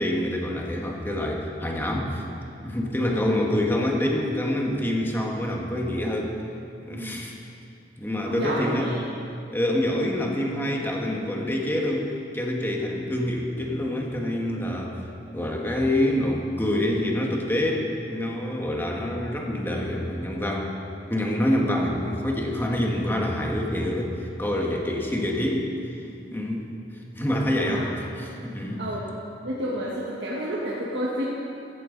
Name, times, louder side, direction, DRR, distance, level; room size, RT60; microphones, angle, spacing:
voice 1, 0.0-2.2 2.6-6.4 6.8-7.3 8.0-8.9 9.5-15.0 15.3-20.7 21.1-24.1 24.4-25.7 26.3-26.7 27.2-27.9 28.2-28.8, left 1 dB, 15° left, -1 dB, 1.6 m, -26 dB
voice 2, 3.0-3.3 6.9-7.2 8.2-9.0 9.9-10.1 15.4-15.7 27.6-27.9 28.8-29.1 29.4-31.3, equal, 80° right, -5 dB, 1.6 m, -31 dB
15.5 x 14.5 x 4.0 m, 2.6 s
head